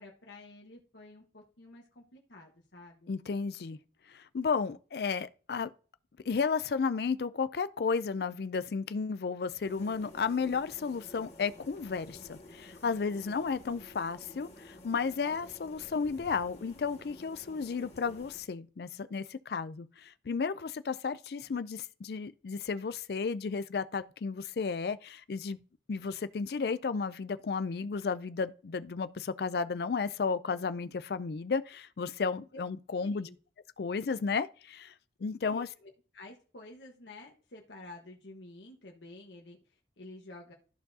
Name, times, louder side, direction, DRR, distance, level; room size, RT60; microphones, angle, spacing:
voice 1, 0.0-3.1 13.2-13.4 32.5-32.6 33.0-33.4 35.4-40.5, left 2 dB, 75° left, 1.3 m, -51 dB
voice 2, 3.1-3.8 4.1-5.7 6.3-25.6 25.9-33.3 33.8-34.9 35.2-35.7, left 5 dB, 55° left, 0.4 m, -33 dB
sound 1, 9.6-18.4, left 1 dB, 35° left, 1.6 m, -52 dB
13.5 x 4.6 x 2.7 m
head